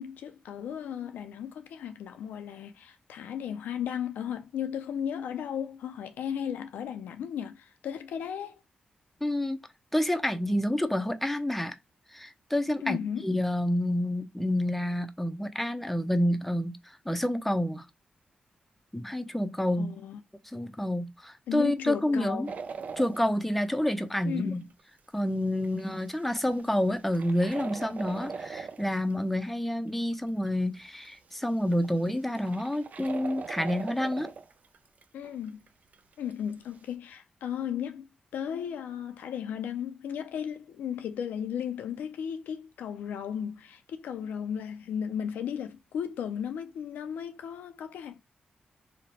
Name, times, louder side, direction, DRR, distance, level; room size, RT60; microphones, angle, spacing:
voice 1, 0.0-8.6 12.8-13.3 19.8-20.2 21.5-22.5 24.3-24.6 35.1-35.6 36.2-38.1 38.3-48.2, left 8 dB, 90° left, 0.3 m, -35 dB
voice 2, 9.2-9.6 9.9-11.8 12.1-17.9 18.9-19.9 20.5-22.5 23.0-24.6 25.1-34.3, left 1 dB, 5° left, 0.5 m, -28 dB
sound 1, 22.4-23.3 23.9-24.4 24.8-24.9 25.2-25.3 25.6-29.1 30.1-30.2 30.5-30.6 31.0-31.1 31.5-35.7 35.9-36.3 36.7-36.8, right 5 dB, 60° right, 0.3 m, -40 dB
2.9 x 2.1 x 2.8 m
cardioid pair, 55°, 3 cm